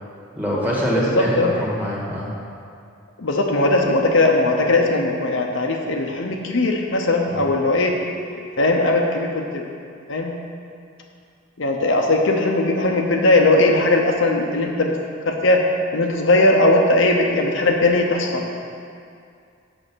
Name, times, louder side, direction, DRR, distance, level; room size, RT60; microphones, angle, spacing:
voice 1, 0.4-2.3 7.3-7.4, equal, 10° right, -5 dB, 1.6 m, -24 dB
voice 2, 0.9-1.5 3.2-8.0 8.3-9.7 10.1-10.3 11.6-14.9 15.3-15.6 15.9-18.5, left 2 dB, 65° left, 1 dB, 0.8 m, -19 dB
7.8 x 6.4 x 6.2 m, 2.4 s
head